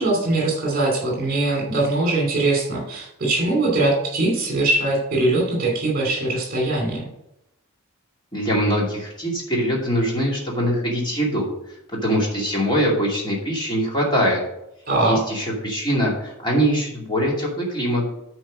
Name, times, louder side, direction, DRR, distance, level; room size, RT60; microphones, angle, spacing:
voice 1, 0.0-7.1 14.9-15.2, right 2 dB, 40° right, -1 dB, 2.7 m, -21 dB
voice 2, 8.3-11.5 11.9-14.4 15.0-18.0, equal, 20° left, -3 dB, 2.4 m, -22 dB
9.1 x 4.5 x 6.2 m, 0.84 s
head